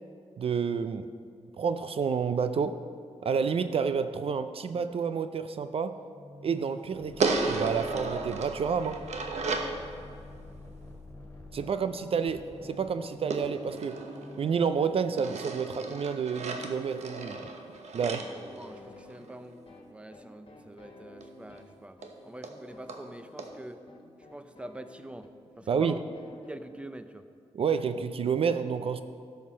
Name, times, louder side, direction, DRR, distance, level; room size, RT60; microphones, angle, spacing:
voice 1, 0.4-1.1 1.6-2.8 3.2-6.0 6.4-9.0 11.5-14.0 14.4-17.5 17.9-18.2 25.7-26.0 27.5-29.0, right 6 dB, 55° right, 11 dB, 0.4 m, -29 dB
sound 1, 6.1-14.7, left 2 dB, 20° left, 2.5 m, -48 dB
sound 2, 7.2-9.8 13.3-14.7 15.2-19.3 21.2-21.3 21.6-21.7 22.0-22.1 22.4-22.5 22.9-23.0 23.4-23.5, right 3 dB, 75° right, 1.0 m, -34 dB
sound 3, 11.7-26.6, left 2 dB, 50° left, 1.6 m, -52 dB
voice 2, 18.4-19.6 19.9-23.8 24.3-26.0 26.5-27.3, right 1 dB, 10° right, 10 dB, 0.6 m, -45 dB
12.5 x 5.7 x 6.2 m, 2.2 s
cardioid pair, 80°, 12 cm